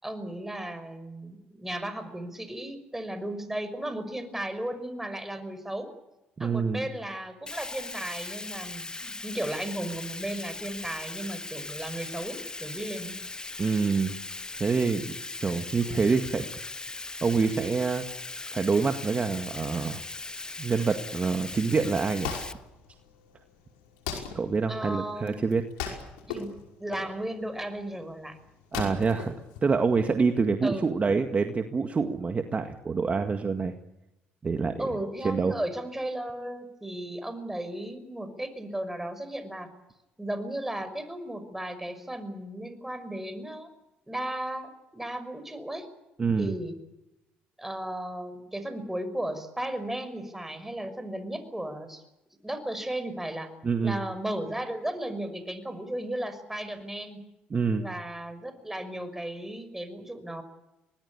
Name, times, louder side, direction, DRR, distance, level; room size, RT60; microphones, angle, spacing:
voice 1, 0.0-5.9 6.4-13.1 24.7-25.4 26.3-26.5 26.8-28.4 30.6-30.8 34.8-39.7 40.2-43.7 44.1-45.9 46.4-46.8 47.6-52.0 52.4-53.5 53.8-57.2 57.8-60.4, right 1 dB, 10° right, 10 dB, 5.7 m, -35 dB
voice 2, 6.4-6.9 13.6-14.2 14.6-15.2 15.4-16.5 17.2-18.0 18.5-20.0 20.6-22.4 24.3-25.6 28.7-29.3 29.6-33.7 34.4-34.9 35.2-35.6 46.2-46.6 53.6-54.0 57.5-57.9, right 4 dB, 35° right, 7 dB, 1.9 m, -26 dB
Bathtub (filling or washing), 7.5-22.5, left 3 dB, 20° left, 1.2 m, -39 dB
Wood, 21.8-30.2, left 7 dB, 90° left, 5.3 m, -39 dB
23.5 x 20.0 x 8.6 m, 0.94 s
supercardioid pair, 70°, 4 cm